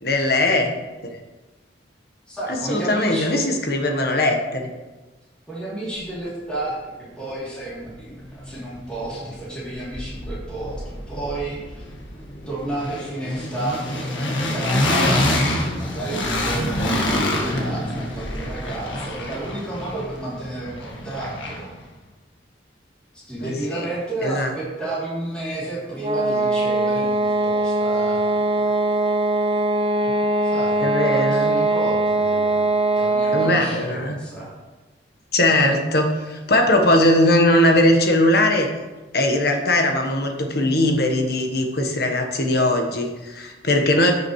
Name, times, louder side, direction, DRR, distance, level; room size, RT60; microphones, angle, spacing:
voice 1, 0.0-0.7 1.0-1.2 2.7-4.7 23.4-23.8 24.2-24.5 30.0-30.2 30.8-31.6 33.3-34.2 35.3-38.7 39.1-44.1, left 1 dB, 55° left, 4 dB, 1.2 m, -20 dB
voice 2, 2.3-3.4 5.5-11.8 12.1-21.7 23.3-28.7 30.4-34.5, right 2 dB, 5° left, -9 dB, 2.8 m, -32 dB
sound 1, 7.8-7.9 8.2-9.4 9.6-21.8, left 1 dB, 85° left, 1.6 m, -26 dB
sound 2, 26.0-33.7, right 2 dB, 30° right, 0.5 m, -21 dB
14.5 x 6.1 x 3.1 m, 1.2 s
head